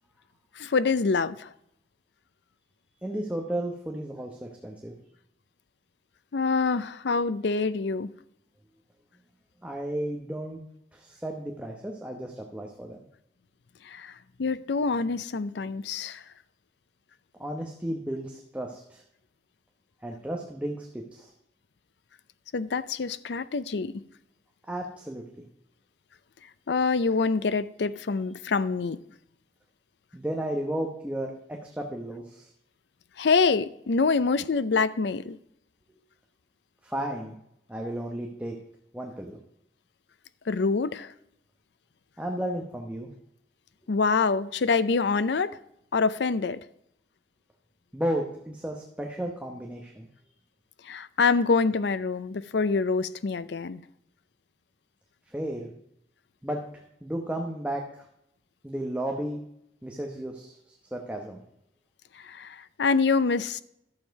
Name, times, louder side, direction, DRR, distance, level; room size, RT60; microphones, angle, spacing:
voice 1, 0.6-1.5 6.3-8.1 13.8-14.1 14.4-16.2 22.5-23.9 26.7-29.0 33.2-35.4 40.5-41.1 43.9-45.6 45.9-46.6 50.8-53.8 62.2-63.6, left 4 dB, 70° left, 0.5 m, -26 dB
voice 2, 3.0-4.9 9.6-10.6 10.9-13.0 17.4-19.0 20.0-21.3 24.7-25.5 30.1-31.3 31.6-32.5 36.8-37.4 37.7-38.5 38.9-39.4 42.2-43.1 47.9-50.1 55.3-55.7 56.4-56.6 57.0-58.1 58.6-59.4 59.8-61.4, right 1 dB, 5° right, 0.9 m, -33 dB
11.5 x 7.3 x 4.7 m
head